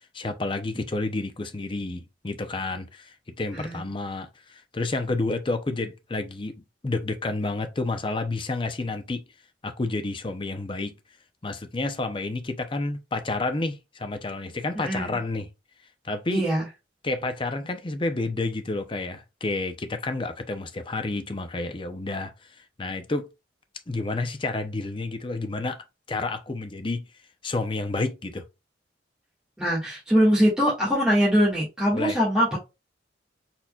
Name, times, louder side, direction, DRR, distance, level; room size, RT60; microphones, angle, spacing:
voice 1, 0.1-9.2 9.6-10.9 11.4-15.5 16.0-16.5 17.0-23.3 23.9-27.0 27.4-28.4 31.9-32.2, left 2 dB, 25° left, 0.6 m, -30 dB
voice 2, 3.5-3.9 14.8-15.2 16.3-16.7 29.6-32.6, equal, 5° right, 1.7 m, -22 dB
4.3 x 4.2 x 2.3 m
head